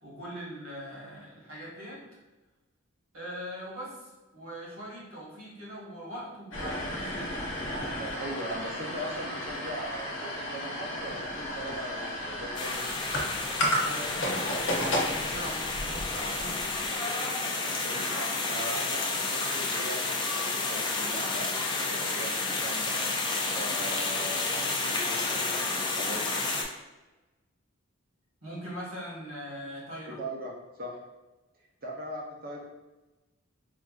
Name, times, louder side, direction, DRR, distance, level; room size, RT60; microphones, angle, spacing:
voice 1, 0.0-2.0 3.1-7.3 13.8-16.6 28.4-30.2, equal, 70° right, -6 dB, 1.5 m, -41 dB
sound 1, 6.5-16.9, equal, 60° left, 0.7 m, -33 dB
voice 2, 8.0-12.9 17.6-23.0 23.5-26.2 30.1-31.0 31.8-32.6, right 1 dB, 45° right, -2 dB, 0.7 m, -40 dB
sound 2, 12.5-26.6, left 3 dB, 20° left, 0.3 m, -30 dB
4.4 x 2.5 x 2.4 m, 1.1 s
head